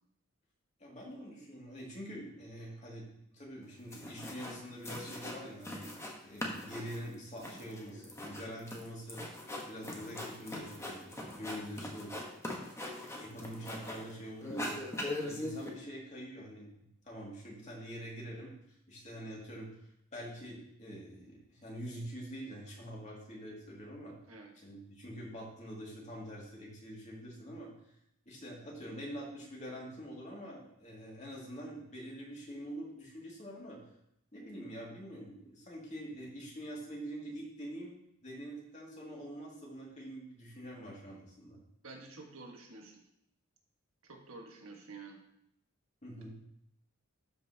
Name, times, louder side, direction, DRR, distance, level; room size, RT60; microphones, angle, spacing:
voice 1, 0.8-5.9 6.2-9.2 9.7-12.1 13.2-14.8 15.2-18.5 18.9-19.7 20.1-24.1 24.6-27.7 28.3-33.8 34.3-37.9 38.2-41.6 46.0-46.3, equal, 35° left, -3 dB, 2.3 m, -45 dB
sound 1, 3.6-3.7 3.9-4.6 4.8-6.1 6.4-14.1 14.4-15.7, left 1 dB, 15° left, 1.1 m, -41 dB
voice 2, 41.8-43.0 44.0-45.2, right 3 dB, 80° right, 1 dB, 1.5 m, -49 dB
12.5 x 5.4 x 2.8 m, 0.76 s
head